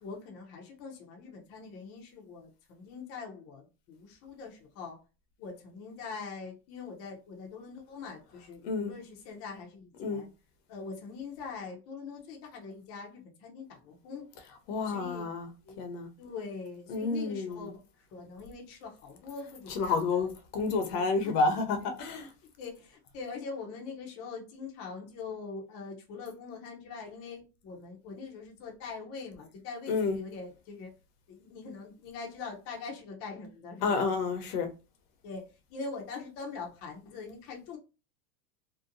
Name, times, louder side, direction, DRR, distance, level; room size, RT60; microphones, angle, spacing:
voice 1, 0.0-5.0 5.4-10.3 10.7-14.2 14.8-15.2 15.6-15.8 16.2-20.3 20.9-21.0 21.8-21.9 22.6-30.9 31.3-34.1 35.2-35.4 35.7-37.8, left 4 dB, 30° left, 0.6 m, -43 dB
voice 2, 14.7-15.5 15.8-16.1 16.9-17.7 19.7-22.3 29.9-30.2 33.8-34.7, left 4 dB, 70° left, 0.8 m, -30 dB
2.8 x 2.1 x 2.5 m
supercardioid pair, 145°, 49 cm